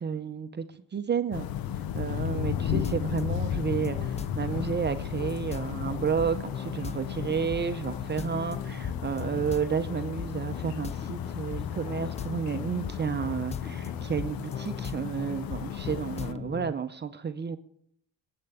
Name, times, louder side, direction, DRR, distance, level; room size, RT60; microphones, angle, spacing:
voice 1, 0.0-1.5 1.8-17.6, right 6 dB, 30° right, 9 dB, 0.6 m, -31 dB
sound 1, 1.3-16.3, left 10 dB, 75° left, 0.7 m, -35 dB
sound 2, 2.3-16.7, left 7 dB, 20° left, 0.4 m, -37 dB
22.0 x 8.8 x 3.5 m, 0.70 s
cardioid pair, 95°, 36 cm